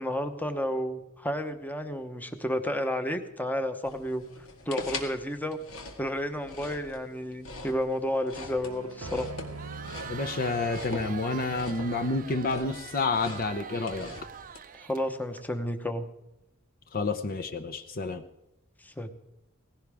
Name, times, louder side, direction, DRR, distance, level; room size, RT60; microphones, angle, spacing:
voice 1, 0.0-4.2 4.7-5.6 6.0-9.3 14.8-16.1 18.8-19.1, equal, 10° left, 8 dB, 0.9 m, -31 dB
sound 1, 3.8-14.6, left 2 dB, 75° left, 1.9 m, -42 dB
sound 2, 8.6-13.7, right 3 dB, 85° right, 0.8 m, -46 dB
Crowd, 9.4-15.4, right 7 dB, 40° right, 0.5 m, -44 dB
voice 2, 10.1-14.1 16.9-18.2, left 3 dB, 45° left, 7 dB, 0.8 m, -29 dB
18.5 x 16.0 x 3.5 m, 0.86 s
head